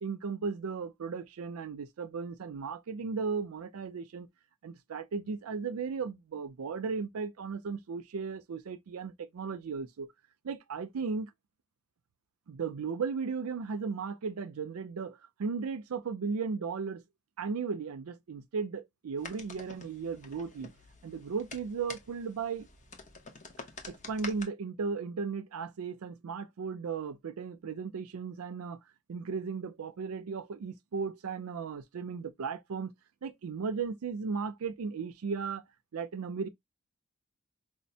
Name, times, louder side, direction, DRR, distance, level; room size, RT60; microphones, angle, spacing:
voice 1, 0.0-4.3 4.6-10.1 10.4-11.3 12.5-17.0 17.4-20.7 21.0-22.7 23.9-28.8 29.1-32.9 33.2-35.6 35.9-36.5, right 5 dB, 80° right, 0.4 m, -36 dB
sound 1, 19.2-24.4, left 4 dB, 35° left, 0.7 m, -48 dB
4.9 x 2.1 x 2.7 m
head